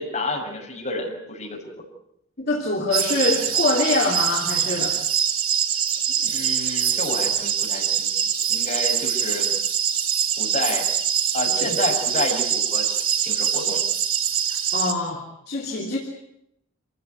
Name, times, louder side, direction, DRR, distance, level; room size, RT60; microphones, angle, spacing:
voice 1, 0.0-1.7 6.1-8.1 8.5-9.5 10.4-10.9 11.3-13.8, left 2 dB, 35° left, -1 dB, 6.5 m, -30 dB
voice 2, 2.4-5.0 11.6-11.7 14.7-16.0, left 2 dB, 50° left, -2 dB, 3.2 m, -24 dB
sound 1, 2.9-14.9, right 9 dB, 85° right, 2.3 m, -24 dB
27.0 x 16.0 x 9.5 m, 0.80 s
head